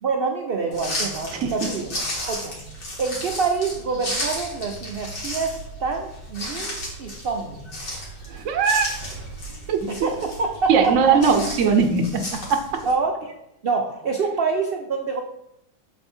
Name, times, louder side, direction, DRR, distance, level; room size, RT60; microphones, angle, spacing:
voice 1, 0.0-1.9 2.3-2.5 3.0-7.6 9.9-11.2 12.8-13.3 13.6-15.2, right 4 dB, 75° right, 3 dB, 0.5 m, -26 dB
sound 1, 0.7-12.9, equal, 90° left, 2.5 m, -33 dB
voice 2, 8.3-8.9 9.7-9.9 10.7-12.0 12.5-12.8, right 6 dB, 60° right, 3 dB, 0.9 m, -19 dB
6.8 x 4.0 x 4.3 m, 0.84 s
omnidirectional pair, 1.8 m